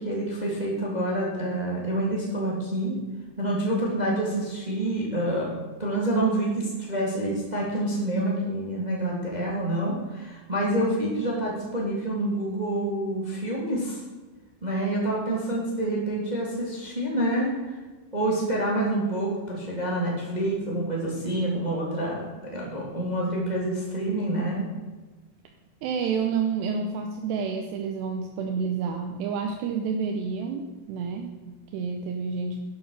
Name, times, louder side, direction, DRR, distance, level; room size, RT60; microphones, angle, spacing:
voice 1, 0.0-3.0 3.4-5.5 5.8-14.0 14.6-17.7 18.1-24.7, right 1 dB, 15° right, -3 dB, 2.0 m, -27 dB
voice 2, 25.8-32.6, right 5 dB, 80° right, 4 dB, 3.0 m, -29 dB
11.5 x 9.3 x 6.6 m, 1.2 s
omnidirectional pair, 4.9 m